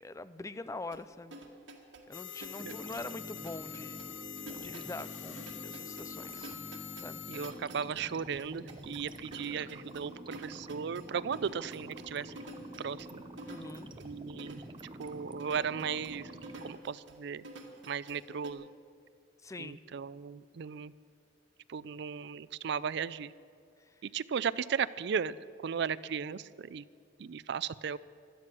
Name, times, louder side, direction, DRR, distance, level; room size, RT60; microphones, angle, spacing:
voice 1, 0.0-1.4 2.1-6.6 6.9-7.2 13.4-13.9 19.4-19.8 23.8-24.0, left 2 dB, 15° left, 14 dB, 0.4 m, -44 dB
sound 1, 0.9-18.5, right 2 dB, 80° right, 1.8 m, -50 dB
sound 2, 2.1-7.5, left 10 dB, 75° left, 0.7 m, -45 dB
sound 3, 2.6-16.8, right 1 dB, 25° right, 0.8 m, -48 dB
voice 2, 7.3-12.3 12.8-13.2 14.0-14.6 15.0-16.3 16.6-17.4 17.8-18.7 19.6-20.9 21.7-23.3 24.0-26.9 27.2-28.0, right 6 dB, 65° right, 17 dB, 0.4 m, -36 dB
17.0 x 12.5 x 6.1 m, 2.3 s
head